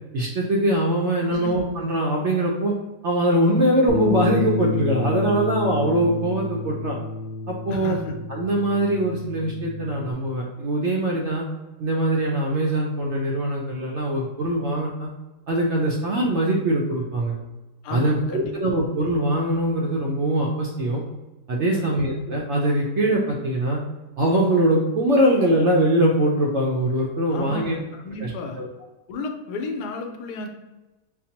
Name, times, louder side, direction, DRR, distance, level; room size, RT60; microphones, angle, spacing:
voice 1, 0.1-2.7 3.0-7.0 7.5-8.0 8.3-11.5 11.8-15.1 15.5-17.3 17.9-21.0 21.5-23.8 24.2-27.7 28.2-28.3 28.6-28.7, right 1 dB, 70° right, -2 dB, 0.7 m, -22 dB
Bass guitar, 3.9-10.1, left 4 dB, 70° left, 0.6 m, -29 dB
voice 2, 7.7-8.1 17.8-18.6 21.7-22.0 27.3-28.6 29.1-30.5, left 2 dB, 85° left, 3 dB, 1.2 m, -32 dB
5.6 x 2.0 x 2.8 m, 1.1 s
omnidirectional pair, 1.7 m